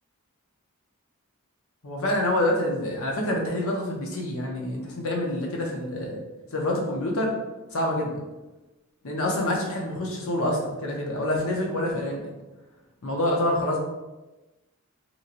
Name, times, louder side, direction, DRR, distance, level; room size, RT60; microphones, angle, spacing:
voice 1, 1.8-6.2 6.5-7.3 7.7-8.2 9.0-12.2 13.0-13.8, left 1 dB, 75° left, -1 dB, 0.7 m, -27 dB
3.0 x 2.7 x 2.5 m, 1.1 s
head